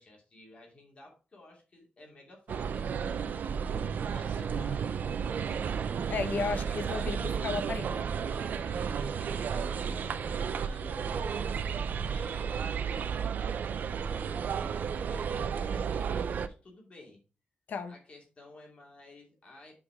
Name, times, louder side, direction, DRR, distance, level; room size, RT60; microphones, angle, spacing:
voice 1, 0.0-5.4 6.4-7.3 8.2-11.4 12.1-17.2 17.9-19.8, left 2 dB, 40° left, 2.4 m, -54 dB
sound 1, 2.5-16.5, right 7 dB, 65° right, 0.5 m, -33 dB
voice 2, 6.1-8.0 17.7-17.9, left 5 dB, 70° left, 1.0 m, -34 dB
6.0 x 4.8 x 4.8 m
wide cardioid pair, 150°, 3 cm